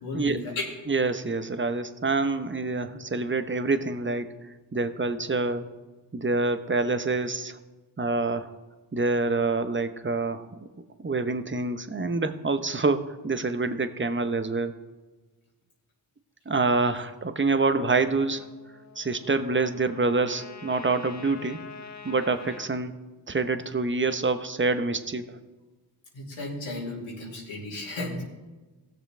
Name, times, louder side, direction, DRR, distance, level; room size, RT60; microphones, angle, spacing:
voice 1, 0.0-0.7 26.1-28.2, left 2 dB, 85° left, -4 dB, 2.6 m, -34 dB
voice 2, 0.9-4.4 4.7-5.7 6.1-7.6 8.0-8.5 8.9-10.5 11.0-14.7 16.5-18.4 19.0-21.6 22.0-23.0 23.3-25.4, right 3 dB, 25° right, 10 dB, 1.0 m, -26 dB
Trumpet, 18.3-22.7, left 5 dB, 35° left, 1.3 m, -45 dB
16.0 x 6.7 x 3.4 m, 1.2 s
supercardioid pair, 40°, 47 cm